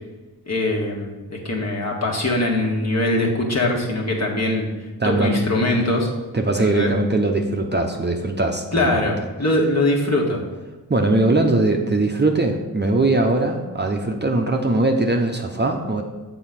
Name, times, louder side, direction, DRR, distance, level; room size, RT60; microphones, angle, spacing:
voice 1, 0.5-4.7 5.0-6.1 6.6-6.9 8.7-10.4, left 1 dB, 40° left, -1 dB, 1.6 m, -22 dB
voice 2, 5.0-5.3 6.3-9.1 10.9-16.0, right 2 dB, 25° right, 3 dB, 0.7 m, -20 dB
7.1 x 3.8 x 5.8 m, 1.2 s
cardioid pair, 45°, 40 cm